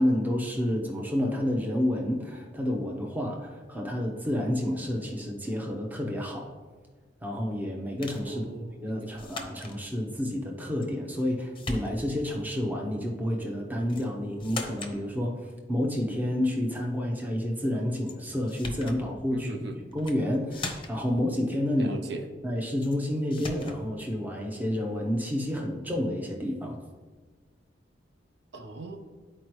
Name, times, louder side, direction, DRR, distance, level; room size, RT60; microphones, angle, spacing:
voice 1, 0.0-6.5 7.2-8.4 8.8-19.5 19.9-21.9 22.4-26.8, left 1 dB, 10° right, 1 dB, 0.8 m, -29 dB
sound 1, 8.0-8.3 9.2-9.8 10.8-11.3 11.5-12.2 13.9-14.1 14.4-15.0 18.1-18.2 18.5-19.0 19.9-20.2 20.5-21.1 22.8-23.0 23.3-23.8, left 3 dB, 30° left, 0.7 m, -39 dB
voice 2, 8.3-9.2 19.3-19.8 21.8-22.2 28.5-29.0, right 3 dB, 70° right, 4 dB, 0.7 m, -39 dB
11.0 x 4.5 x 3.1 m, 1.4 s
head